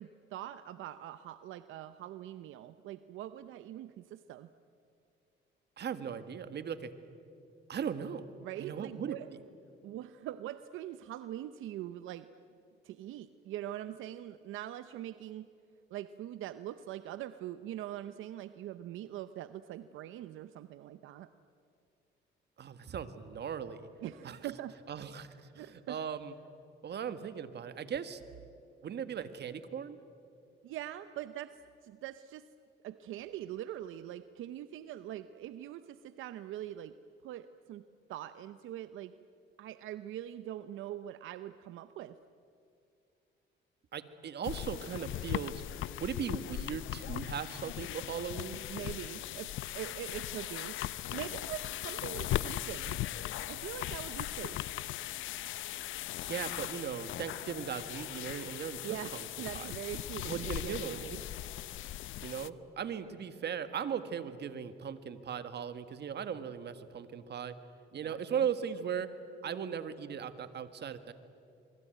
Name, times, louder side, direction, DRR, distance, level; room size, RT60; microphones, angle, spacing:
voice 1, 0.0-4.5 8.4-9.3 9.8-12.3 12.8-15.5 15.9-21.3 24.0-24.8 25.5-26.0 30.6-32.5 32.8-36.9 37.2-37.8 38.1-39.2 39.6-42.2 48.7-50.8 51.1-53.0 53.5-54.6 58.8-61.2 68.0-68.4, right 12 dB, 85° right, 12 dB, 0.7 m, -43 dB
voice 2, 5.8-6.9 7.7-8.3 8.6-9.2 22.6-23.9 24.2-24.4 24.9-26.3 26.8-28.2 28.8-30.0 43.9-48.6 56.2-59.3 59.5-59.7 60.2-61.0 62.2-67.6 67.9-69.1 69.4-71.1, right 7 dB, 60° right, 11 dB, 1.7 m, -38 dB
sound 1, 44.4-62.5, left 14 dB, 80° left, 0.7 m, -39 dB
25.5 x 24.0 x 9.2 m, 2.6 s
cardioid pair, 90°, 20 cm